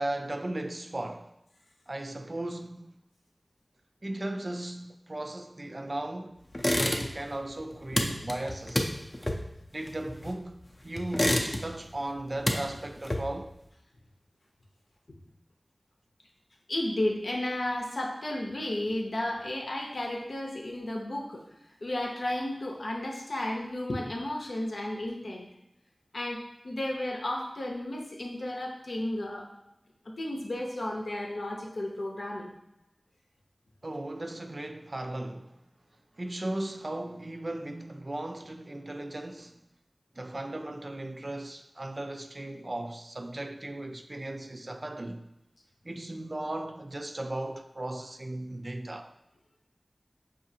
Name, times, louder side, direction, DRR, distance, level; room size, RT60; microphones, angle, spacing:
voice 1, 0.0-1.3 1.9-3.0 4.0-6.4 6.8-8.9 9.7-13.6 33.8-35.6 36.2-39.7 40.2-45.2 45.8-49.1, right 1 dB, 45° right, 0.3 m, -37 dB
sound 1, 6.5-7.3 7.6-10.5 11.0-11.9 12.2-13.5, left 1 dB, 35° left, 0.5 m, -29 dB
voice 2, 16.7-21.4 21.8-25.5 26.1-29.5 30.0-32.5, left 1 dB, 80° left, 0.7 m, -33 dB
4.8 x 2.5 x 2.7 m
wide cardioid pair, 50°, 0 cm